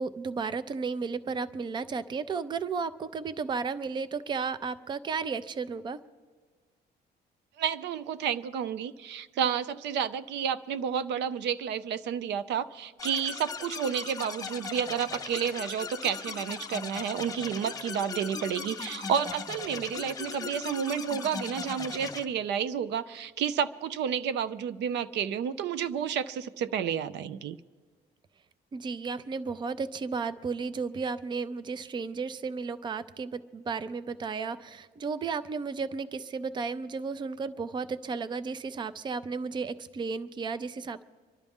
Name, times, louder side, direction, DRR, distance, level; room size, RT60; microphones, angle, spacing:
voice 1, 0.0-6.0 28.7-41.0, right 5 dB, 25° right, 14 dB, 0.5 m, -33 dB
voice 2, 7.6-27.6, right 8 dB, 85° right, 13 dB, 0.6 m, -31 dB
sound 1, 13.0-22.2, left 5 dB, 20° left, 0.6 m, -38 dB
25.0 x 12.0 x 3.6 m, 1.5 s
cardioid pair, 160°, 18 cm